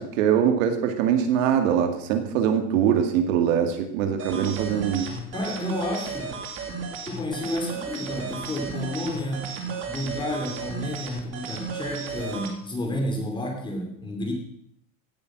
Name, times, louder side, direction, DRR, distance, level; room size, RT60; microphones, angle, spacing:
voice 1, 0.0-5.1, right 8 dB, 70° right, 6 dB, 2.3 m, -23 dB
sound 1, 4.2-12.5, right 4 dB, 30° right, 2.2 m, -34 dB
voice 2, 5.3-6.3 7.1-9.5 9.9-14.3, left 1 dB, 10° left, 2 dB, 2.9 m, -31 dB
16.5 x 8.9 x 6.2 m, 0.70 s
supercardioid pair, 160°, 41 cm